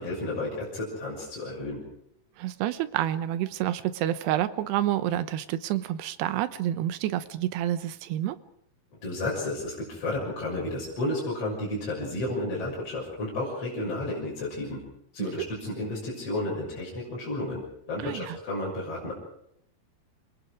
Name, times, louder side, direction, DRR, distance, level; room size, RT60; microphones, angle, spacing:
voice 1, 0.0-1.8 9.0-14.8 15.1-17.6 17.9-19.1, left 1 dB, 35° left, -5 dB, 7.4 m, -32 dB
voice 2, 2.4-8.4 15.2-15.5 18.0-18.4, right 12 dB, 85° right, 13 dB, 3.1 m, -29 dB
27.5 x 22.0 x 5.0 m, 0.72 s
omnidirectional pair, 4.7 m